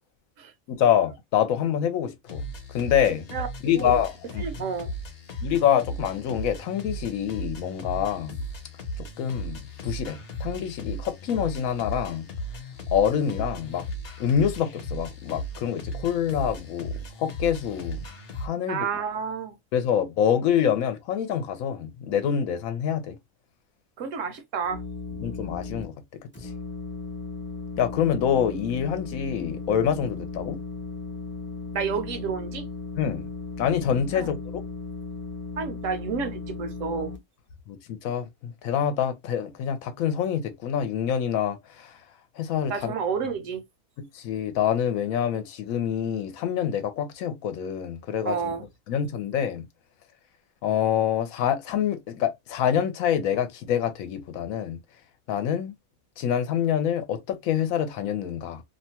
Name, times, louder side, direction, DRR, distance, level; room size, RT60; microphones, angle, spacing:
voice 1, 0.7-2.4 2.7-3.3 3.6-4.5 5.4-8.4 9.0-12.3 12.9-13.8 14.2-18.0 18.4-18.9 19.7-23.2 25.2-26.5 27.8-30.6 33.0-33.3 33.6-34.4 37.7-42.0 42.4-42.9 44.1-48.5 48.9-49.7 50.6-54.8 55.3-55.7 56.2-58.6, left 9 dB, 80° left, 1.0 m, -26 dB
sound 1, 2.3-18.5, equal, 50° left, 0.9 m, -36 dB
voice 2, 4.4-4.9 18.7-19.5 24.0-24.8 31.7-32.7 34.1-34.3 35.6-37.1 42.7-43.6 48.2-48.6, right 6 dB, 70° right, 1.0 m, -30 dB
sound 2, 24.6-25.8 26.3-37.2, left 3 dB, 15° left, 0.4 m, -36 dB
2.8 x 2.2 x 2.7 m
omnidirectional pair, 1.4 m